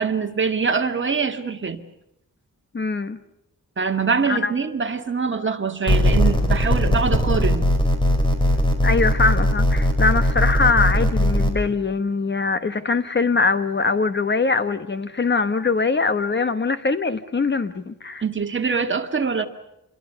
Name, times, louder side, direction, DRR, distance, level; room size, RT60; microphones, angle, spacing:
voice 1, 0.0-1.8 3.8-7.6 18.2-19.5, right 5 dB, 35° right, 2.0 m, -24 dB
voice 2, 2.7-3.2 4.3-4.5 8.8-18.2, left 4 dB, 35° left, 1.1 m, -22 dB
sound 1, 5.9-11.5, equal, 15° left, 4.9 m, -19 dB
28.0 x 23.5 x 6.8 m
wide cardioid pair, 160°, 32 cm